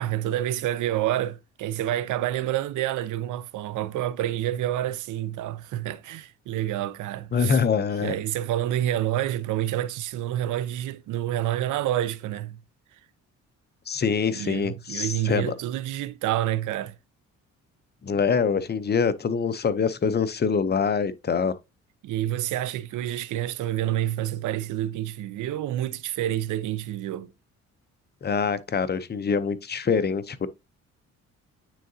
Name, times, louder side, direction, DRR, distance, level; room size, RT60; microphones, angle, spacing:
voice 1, 0.0-7.6 8.0-12.6 14.3-17.0 22.0-27.3, right 13 dB, 80° right, 0.6 m, -28 dB
voice 2, 7.3-8.2 13.9-15.5 18.0-21.5 28.2-30.5, left 6 dB, 35° left, 0.7 m, -25 dB
9.1 x 3.9 x 2.7 m
cardioid pair, 90°, 30 cm